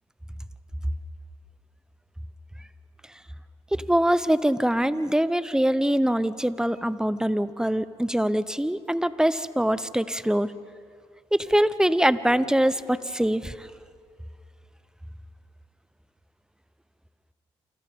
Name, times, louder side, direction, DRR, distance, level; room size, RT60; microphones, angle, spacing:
voice 1, 3.7-10.5 11.3-13.7, right 1 dB, 5° right, 15 dB, 1.0 m, -23 dB
29.0 x 27.5 x 3.8 m, 2.2 s
hypercardioid pair, 45°, 13 cm